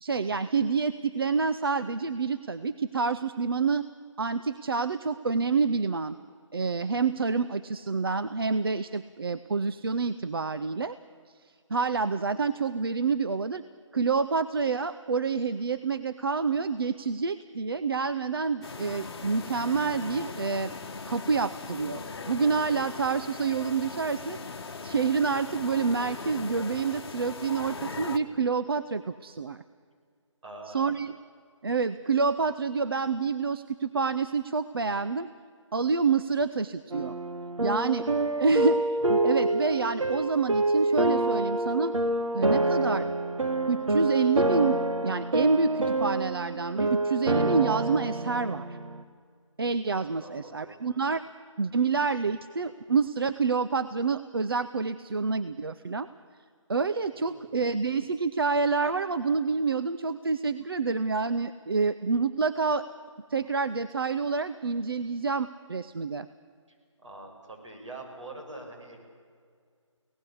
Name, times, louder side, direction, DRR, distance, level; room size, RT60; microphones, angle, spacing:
voice 1, 0.0-3.8 4.2-6.2 6.5-10.9 11.7-13.6 13.9-20.7 21.1-24.4 24.8-29.6 30.7-31.1 31.6-35.3 35.7-37.1 37.6-38.1 38.4-41.9 42.3-43.1 43.7-48.8 49.6-51.2 51.6-56.1 56.7-62.9 63.3-66.3, right 4 dB, 45° right, 12 dB, 0.6 m, -28 dB
sound 1, 18.6-28.2, left 4 dB, 50° left, 1.2 m, -39 dB
voice 2, 30.4-30.9 37.6-37.9 50.1-50.8 57.1-57.6 67.0-69.0, right 2 dB, 65° right, 1 dB, 6.5 m, -45 dB
sound 2, 36.9-49.0, right 2 dB, 85° right, 1.4 m, -27 dB
24.5 x 17.5 x 8.5 m, 2.1 s
figure-of-eight pair, 170°, 16 cm